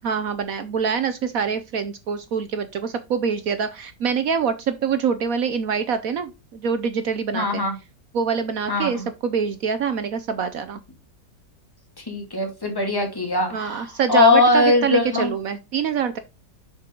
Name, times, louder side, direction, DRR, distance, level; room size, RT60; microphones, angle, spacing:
voice 1, 0.0-7.6 8.1-10.8 13.5-16.2, right 6 dB, 65° right, 10 dB, 1.0 m, -25 dB
voice 2, 7.3-7.8 8.7-9.1 12.0-15.3, left 3 dB, 10° left, 3 dB, 2.1 m, -21 dB
7.2 x 6.0 x 3.7 m, 0.26 s
omnidirectional pair, 1.9 m